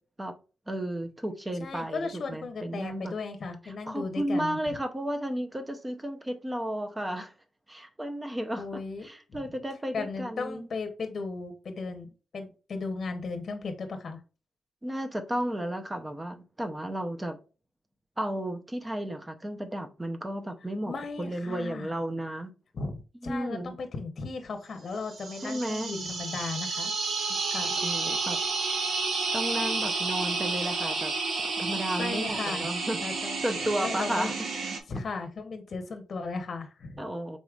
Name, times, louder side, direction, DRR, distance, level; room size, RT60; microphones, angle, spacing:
voice 1, 0.7-3.1 3.9-7.3 7.7-10.7 14.8-17.4 18.2-22.5 23.2-23.8 25.4-25.9 27.3-27.4 27.8-28.4 29.3-31.1 31.4-33.0 33.4-34.3 37.0-37.4, right 1 dB, 15° right, 0.6 m, -33 dB
voice 2, 1.6-4.6 8.6-9.4 9.9-14.2 20.8-21.9 22.7-26.9 27.5-27.8 32.0-32.7 33.0-33.4 33.8-34.3 34.9-37.1, left 4 dB, 50° left, 0.8 m, -36 dB
sound 1, 25.1-34.8, right 4 dB, 70° right, 0.8 m, -31 dB
4.7 x 4.1 x 2.4 m
wide cardioid pair, 125°, 0 cm